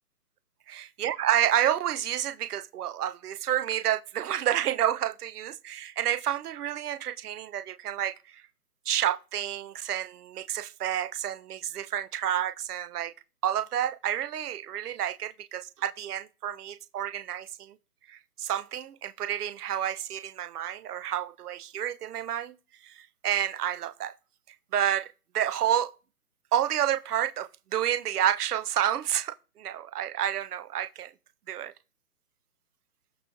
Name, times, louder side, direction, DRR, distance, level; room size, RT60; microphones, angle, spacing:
voice 1, 0.7-8.4 8.9-13.1 13.4-17.7 18.1-22.5 22.8-24.1 24.7-25.9 26.5-31.1 31.5-31.7, right 11 dB, 75° right, 0.6 m, -29 dB
8.2 x 3.1 x 5.2 m
hypercardioid pair, 155°, 46 cm